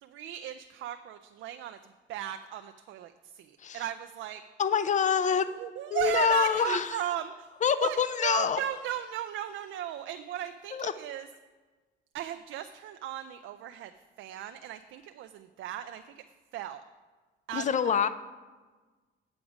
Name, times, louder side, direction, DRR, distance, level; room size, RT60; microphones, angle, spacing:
voice 1, 0.0-1.8 2.1-4.4 5.2-11.3 12.1-13.9 14.2-16.2 16.5-16.8 17.5-18.0, right 11 dB, 75° right, 9 dB, 0.4 m, -36 dB
voice 2, 4.6-5.5 5.9-6.9 7.6-8.6 10.7-10.9 17.5-18.1, left 7 dB, 40° left, 13 dB, 0.5 m, -26 dB
8.6 x 6.0 x 5.0 m, 1.3 s
cardioid pair, 90°, 20 cm